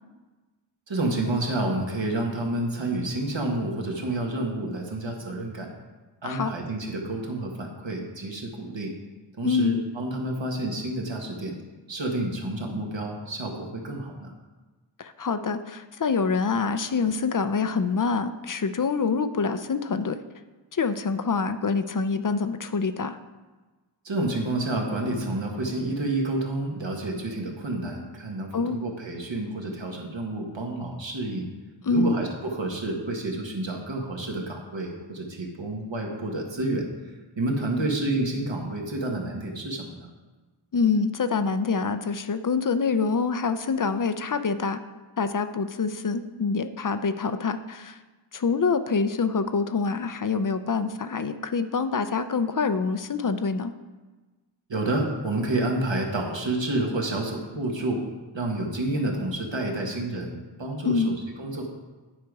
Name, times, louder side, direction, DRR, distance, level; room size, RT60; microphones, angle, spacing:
voice 1, 0.9-5.7 6.2-8.9 9.4-11.5 11.9-14.3 24.0-31.5 31.9-36.9 37.4-40.1 54.7-58.0 58.3-61.7, right 2 dB, 65° right, 1 dB, 1.5 m, -29 dB
voice 2, 9.4-9.8 15.0-20.2 20.7-23.2 28.5-28.8 31.8-32.1 40.7-44.8 45.2-48.0 48.3-53.7 60.8-61.2, left 4 dB, 45° left, 11 dB, 0.5 m, -26 dB
9.6 x 5.1 x 4.7 m, 1.3 s
wide cardioid pair, 55°, 48 cm